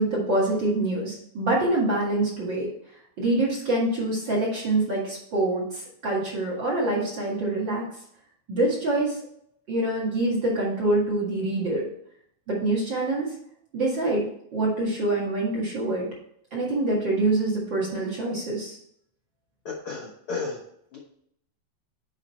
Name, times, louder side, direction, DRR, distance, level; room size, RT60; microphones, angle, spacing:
voice 1, 0.0-2.7 3.2-7.8 8.5-9.2 9.7-11.8 12.5-13.3 13.7-14.2 14.5-16.1 16.5-18.8, right 2 dB, 40° right, -3 dB, 1.9 m, -25 dB
voice 2, 19.6-20.6 20.9-21.0, left 4 dB, 90° left, -3 dB, 1.1 m, -33 dB
9.4 x 4.0 x 4.3 m, 0.71 s
omnidirectional pair, 4.3 m